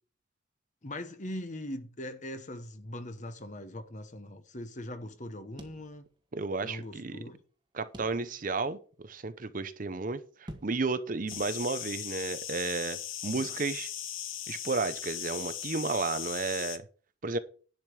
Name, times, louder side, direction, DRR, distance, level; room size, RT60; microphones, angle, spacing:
voice 1, 0.8-6.1 6.6-7.4 13.3-13.5, left 1 dB, 35° left, 1.2 m, -41 dB
sound 1, 5.6-6.5 6.8-6.9 7.9-8.6 9.1-9.2 10.5-11.0 11.3-12.0, equal, 20° right, 1.3 m, -49 dB
voice 2, 6.3-7.2 7.7-8.8 9.0-13.9 14.5-16.8 17.2-17.4, right 3 dB, 40° right, 0.7 m, -33 dB
sound 2, 11.3-16.8, left 10 dB, 80° left, 1.1 m, -38 dB
10.5 x 5.1 x 6.3 m
head